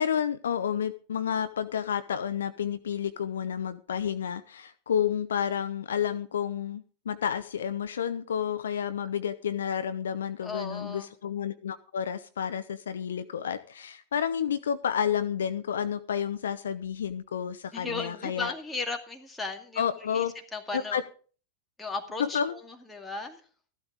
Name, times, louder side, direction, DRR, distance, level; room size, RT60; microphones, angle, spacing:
voice 1, 0.0-18.5 19.8-20.3 20.7-21.0 22.2-22.5, left 8 dB, 65° left, 12 dB, 0.7 m, -30 dB
voice 2, 10.4-11.1 17.7-21.0 21.8-23.4, left 4 dB, 10° left, 4 dB, 2.2 m, -36 dB
14.5 x 12.0 x 3.7 m, 0.39 s
figure-of-eight pair, 90°, 0 cm